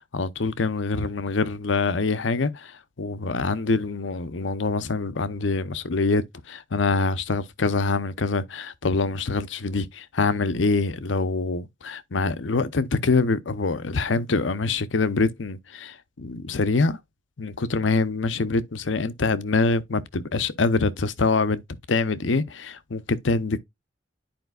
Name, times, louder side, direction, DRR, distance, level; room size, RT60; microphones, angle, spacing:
voice 1, 0.1-17.0 17.4-21.6 21.9-23.6, left 3 dB, 80° left, 0.7 m, -25 dB
10.5 x 5.0 x 2.3 m
head